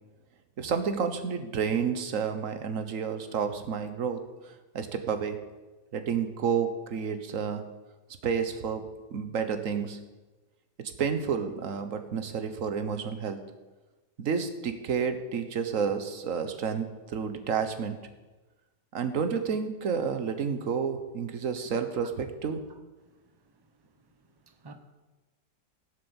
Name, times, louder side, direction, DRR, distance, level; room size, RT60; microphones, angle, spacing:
voice 1, 0.6-5.4 5.9-7.6 8.2-8.8 9.1-10.0 10.8-13.4 14.2-18.0 18.9-22.6, right 6 dB, 50° right, 1.4 m, -30 dB
voice 2, 23.0-23.9 24.1-24.7, right 3 dB, 15° right, 0.9 m, -54 dB
16.5 x 7.6 x 7.1 m
omnidirectional pair, 1.9 m